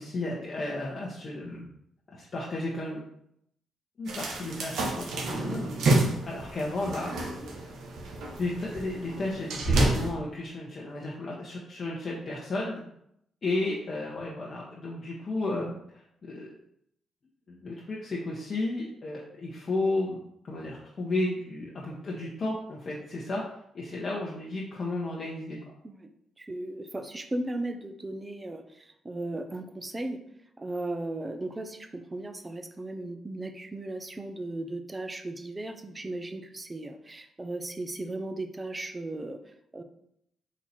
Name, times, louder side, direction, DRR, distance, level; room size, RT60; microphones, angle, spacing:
voice 1, 0.0-1.7 2.1-3.0 4.0-5.7 6.2-7.3 8.4-12.9 13.4-16.5 17.5-20.2 20.4-23.4 23.7-25.6, left 2 dB, 50° left, -4 dB, 0.9 m, -33 dB
sound 1, 4.1-10.1, right 2 dB, 75° right, 1.0 m, -29 dB
voice 2, 26.4-30.2 30.6-39.8, right 2 dB, 25° right, 7 dB, 0.6 m, -36 dB
4.1 x 2.9 x 4.2 m, 0.74 s
supercardioid pair, 55°, 0 cm